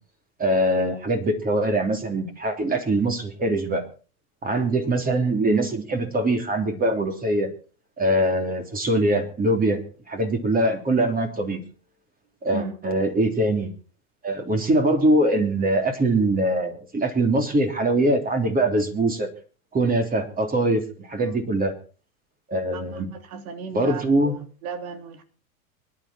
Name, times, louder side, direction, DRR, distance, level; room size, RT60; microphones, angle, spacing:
voice 1, 0.4-3.8 4.4-7.5 8.0-9.8 10.1-11.6 12.4-13.7 14.2-19.3 19.7-21.7 22.5-23.1 23.7-24.3, right 1 dB, 20° right, 3.2 m, -22 dB
voice 2, 22.7-25.2, right 6 dB, 70° right, 3.3 m, -36 dB
24.5 x 11.0 x 4.3 m
hypercardioid pair, 115°, 45 cm